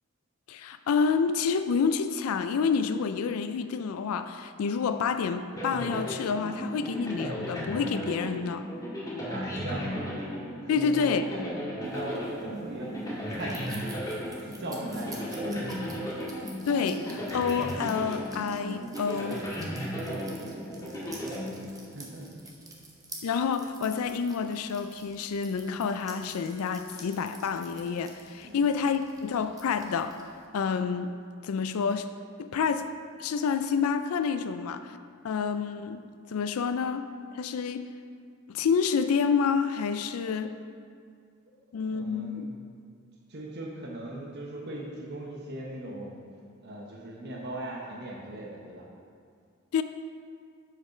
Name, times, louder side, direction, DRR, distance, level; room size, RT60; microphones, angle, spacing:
voice 1, 0.5-8.7 10.7-11.2 16.7-19.4 23.2-30.2 30.5-31.1 31.4-32.1 32.4-32.9 33.2-35.0 35.2-37.0 37.3-37.9 38.5-40.5 41.7-42.5 49.7-49.8, left 6 dB, 80° left, 10 dB, 0.4 m, -28 dB
sound 1, 5.6-22.1, equal, 15° left, 1.7 m, -35 dB
voice 2, 9.3-10.1 10.6-11.2 11.7-12.9 13.3-14.0 14.4-15.8 20.1-21.6 21.9-22.4 28.4-28.7 41.5-42.6 43.3-46.3 46.6-48.8, right 1 dB, 50° right, -3 dB, 0.9 m, -39 dB
sound 2, 11.8-30.5, right 2 dB, 15° right, 0.9 m, -50 dB
7.5 x 5.1 x 5.6 m, 2.2 s
head